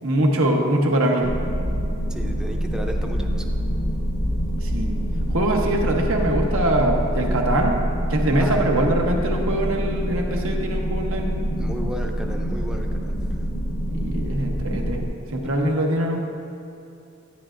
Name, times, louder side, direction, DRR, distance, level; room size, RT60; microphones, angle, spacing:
voice 1, 0.0-1.3 4.6-4.9 5.3-7.8 8.1-11.3 13.9-15.0 15.3-16.2, right 1 dB, 85° right, 1 dB, 1.0 m, -22 dB
sound 1, 1.2-15.1, equal, 80° left, 1.2 m, -25 dB
voice 2, 2.1-3.5 8.3-8.8 11.6-13.4, equal, 5° right, 2 dB, 0.4 m, -34 dB
10.5 x 9.0 x 2.5 m, 2.6 s
head